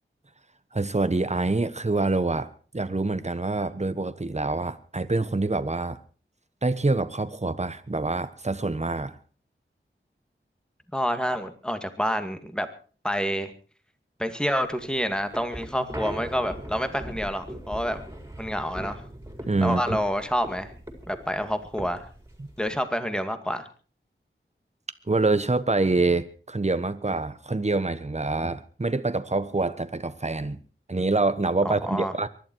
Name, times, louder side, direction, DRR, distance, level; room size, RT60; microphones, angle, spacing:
voice 1, 0.7-6.0 6.6-9.2 19.5-20.0 22.4-22.5 25.1-30.6 30.9-32.3, right 3 dB, 30° right, 1.2 m, -26 dB
voice 2, 10.9-12.7 13.0-13.5 14.2-18.0 18.4-19.0 19.6-20.7 21.1-22.0 22.6-23.7 31.6-32.1, equal, 5° left, 2.2 m, -28 dB
sound 1, 14.7-22.8, equal, 15° right, 4.5 m, -40 dB
23.5 x 12.0 x 4.7 m
wide cardioid pair, 50°, 21 cm